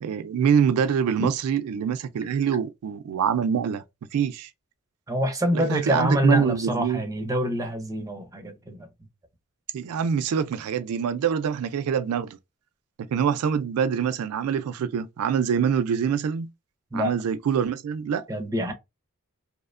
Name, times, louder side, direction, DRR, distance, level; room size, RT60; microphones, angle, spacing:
voice 1, 0.0-3.8 4.1-4.5 5.5-7.0 9.7-12.4 13.1-16.5 16.9-18.2, right 7 dB, 75° right, 0.3 m, -25 dB
voice 2, 5.1-8.9 16.9-17.1 18.3-18.7, equal, 15° right, 0.5 m, -26 dB
2.7 x 2.1 x 2.4 m
head